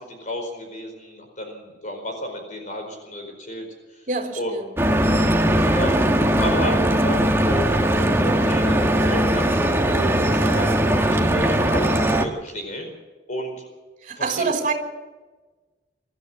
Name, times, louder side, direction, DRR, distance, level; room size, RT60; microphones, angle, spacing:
voice 1, 0.0-4.0 4.4-4.5 5.6-12.9 13.3-13.6 14.1-14.4, equal, 45° left, 4.7 m, -32 dB
voice 2, 4.1-4.7 14.0-14.7, right 4 dB, 45° right, 3.1 m, -26 dB
Stream / Boat Water vehicle, 4.8-12.3, right 1 dB, 15° right, 1.6 m, -19 dB
25.5 x 14.0 x 7.4 m
head